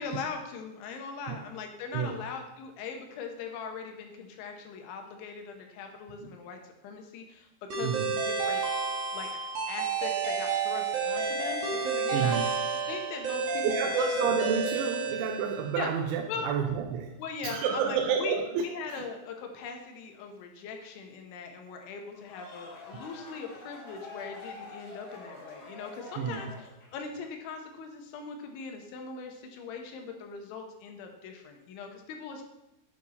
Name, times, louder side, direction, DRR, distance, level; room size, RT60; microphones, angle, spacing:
voice 1, 0.0-8.6 9.1-9.3 9.7-12.4 12.9-13.9 14.2-14.4 15.7-15.9 16.3-16.5 17.2-32.4, left 5 dB, 80° left, 4 dB, 3.3 m, -40 dB
sound 1, 7.7-15.8, right 4 dB, 70° right, 1.5 m, -30 dB
voice 2, 12.1-12.5 13.6-17.2 17.4-18.7 19.0-19.1 26.2-26.4, right 7 dB, 90° right, 3 dB, 3.0 m, -30 dB
sound 2, 22.1-27.1, left 3 dB, 45° left, 3.7 m, -47 dB
8.8 x 7.2 x 4.2 m, 0.93 s
omnidirectional pair, 5.4 m